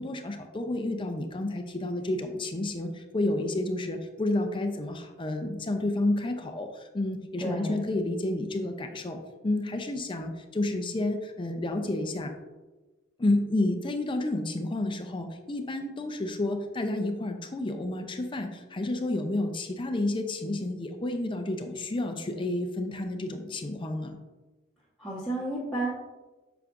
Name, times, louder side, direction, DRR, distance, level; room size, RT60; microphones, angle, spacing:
voice 1, 0.0-12.3 13.2-24.2, left 2 dB, 25° left, 5 dB, 0.5 m, -30 dB
voice 2, 7.4-7.8 25.0-25.9, right 1 dB, ahead, -10 dB, 1.2 m, -31 dB
8.6 x 5.9 x 2.5 m, 1.2 s
head